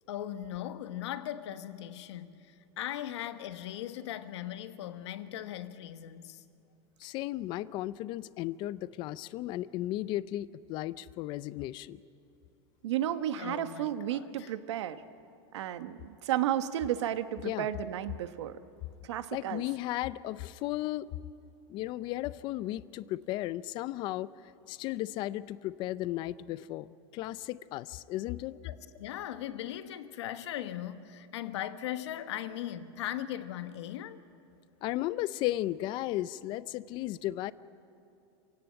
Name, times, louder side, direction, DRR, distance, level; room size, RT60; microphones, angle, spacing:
voice 1, 0.1-6.4 13.4-14.5 28.6-34.2, left 12 dB, 75° left, 1.2 m, -39 dB
voice 2, 7.0-12.0 17.4-17.7 19.3-21.1 21.7-24.3 24.7-28.6 34.8-37.5, left 15 dB, 35° left, 0.5 m, -35 dB
voice 3, 12.8-15.0 15.5-18.6 19.0-19.6, right 11 dB, 85° right, 1.2 m, -33 dB
27.0 x 17.0 x 8.9 m
supercardioid pair, 160°, 14 cm